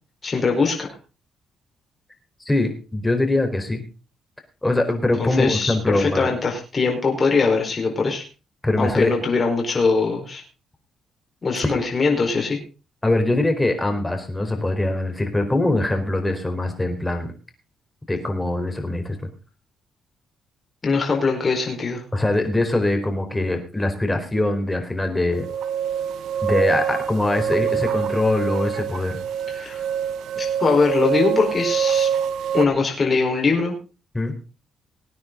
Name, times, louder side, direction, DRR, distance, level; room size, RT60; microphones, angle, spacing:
voice 1, 0.2-0.9 5.2-8.2 8.8-10.4 11.4-12.6 20.8-22.0 29.5-29.8 30.4-32.1 32.5-33.7, left 4 dB, 35° left, 1 dB, 4.6 m, -21 dB
voice 2, 2.4-3.8 4.6-6.3 8.6-9.1 11.6-11.8 13.0-17.3 18.1-19.2 22.1-25.5 26.4-29.2 34.1-34.3, left 2 dB, 10° left, 5 dB, 4.3 m, -22 dB
sound 1, 25.3-32.7, right 8 dB, 80° right, 1.0 m, -25 dB
19.5 x 9.5 x 3.9 m, 0.33 s
cardioid pair, 90°, 0 cm